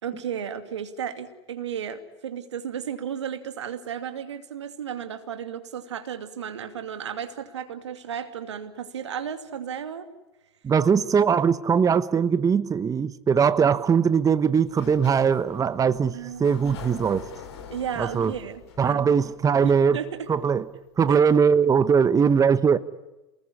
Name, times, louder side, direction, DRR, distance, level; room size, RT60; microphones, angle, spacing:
voice 1, 0.0-10.1 16.1-17.1 17.7-19.2 19.6-20.3 21.1-21.2, right 8 dB, 80° right, 8 dB, 2.6 m, -34 dB
voice 2, 10.6-17.2 18.0-18.3 18.8-20.0 20.3-20.6 21.0-22.8, right 6 dB, 25° right, 13 dB, 1.1 m, -21 dB
Sliding door, 14.6-20.2, left 7 dB, 70° left, 5.4 m, -44 dB
29.0 x 20.5 x 9.9 m, 1.0 s
hypercardioid pair, 85°, 15 cm